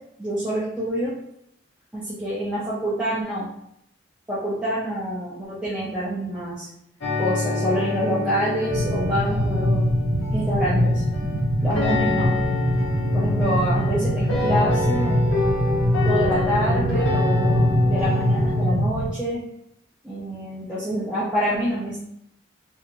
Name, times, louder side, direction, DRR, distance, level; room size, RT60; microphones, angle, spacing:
voice 1, 0.2-1.1 1.9-3.5 4.3-6.7 7.2-9.9 10.3-11.0 11.6-12.3 12.8-15.2 16.0-19.4 20.0-22.0, equal, 5° right, -10 dB, 0.5 m, -26 dB
sound 1, 7.0-18.7, left 3 dB, 85° left, 0.7 m, -28 dB
sound 2, 8.7-19.1, equal, 85° right, 1.0 m, -22 dB
2.8 x 2.8 x 2.5 m, 0.75 s
head